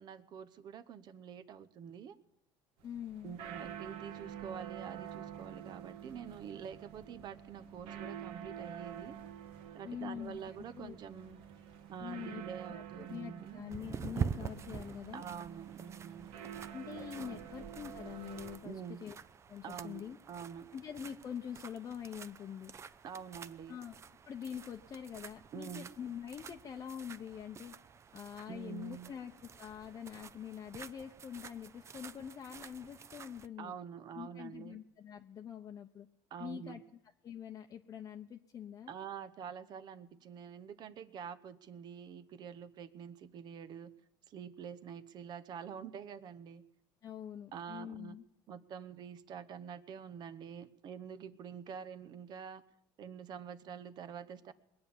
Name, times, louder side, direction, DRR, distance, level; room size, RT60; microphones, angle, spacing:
voice 1, 0.0-2.2 3.2-9.2 9.7-11.4 11.9-13.6 15.1-16.3 16.9-17.5 18.6-19.1 19.6-20.0 20.3-20.7 23.0-23.8 25.5-25.9 28.5-29.1 33.6-34.8 36.3-36.8 38.9-43.9 44.3-46.6 47.5-48.2 48.5-52.6 53.0-54.5, right 7 dB, 45° right, 14 dB, 0.9 m, -46 dB
voice 2, 2.8-3.4 9.8-11.0 12.0-12.4 12.7-12.8 13.1-15.2 16.7-18.7 19.0-19.2 19.5-20.2 20.7-22.7 23.7-24.0 24.3-27.7 28.1-33.7 34.1-36.1 36.4-36.8 37.2-38.9 47.0-48.2, left 8 dB, 35° left, 3 dB, 0.8 m, -45 dB
sound 1, 2.8-18.6, right 9 dB, 70° right, 1.6 m, -48 dB
sound 2, 13.7-33.5, right 7 dB, 30° right, 0.6 m, -47 dB
21.0 x 8.7 x 7.2 m, 0.84 s
supercardioid pair, 115°, 10 cm